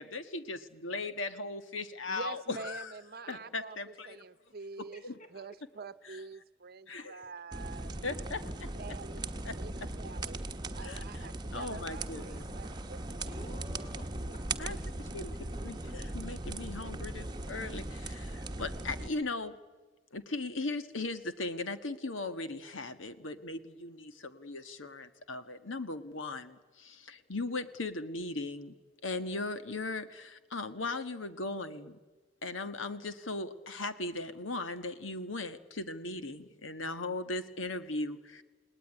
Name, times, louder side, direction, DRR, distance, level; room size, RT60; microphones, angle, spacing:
voice 1, 0.0-2.9 3.3-4.1 5.0-5.1 6.9-7.2 8.0-8.7 9.4-9.6 10.8-11.3 11.5-12.5 14.6-14.8 15.1-19.6 20.1-28.7 29.0-32.0 32.4-38.4, left 2 dB, 80° left, 10 dB, 1.6 m, -38 dB
voice 2, 2.1-5.0 5.3-8.0 8.4-10.4 10.7-13.5, right 4 dB, 55° right, 14 dB, 0.9 m, -47 dB
voice 3, 4.6-5.3 13.3-14.7, left 1 dB, 40° left, 7 dB, 3.7 m, -53 dB
sound 1, 7.5-19.1, right 2 dB, 20° right, 1.2 m, -39 dB
29.0 x 19.0 x 9.8 m, 1.3 s
head